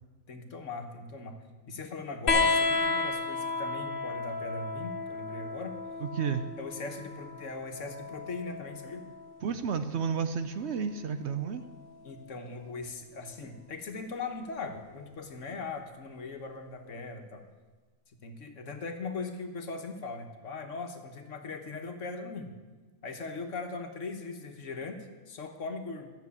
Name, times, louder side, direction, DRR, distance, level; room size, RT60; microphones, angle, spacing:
voice 1, 0.3-1.4 1.7-5.8 6.6-9.1 12.0-17.4 18.2-22.5 23.0-26.1, left 3 dB, 65° left, 5 dB, 1.5 m, -39 dB
sound 1, 2.3-9.3 10.7-11.5 12.8-12.9, left 3 dB, 45° left, 1.0 m, -32 dB
voice 2, 6.0-6.5 9.4-11.6, right 6 dB, 60° right, 9 dB, 0.9 m, -31 dB
13.0 x 6.7 x 8.3 m, 1.3 s
omnidirectional pair, 1.4 m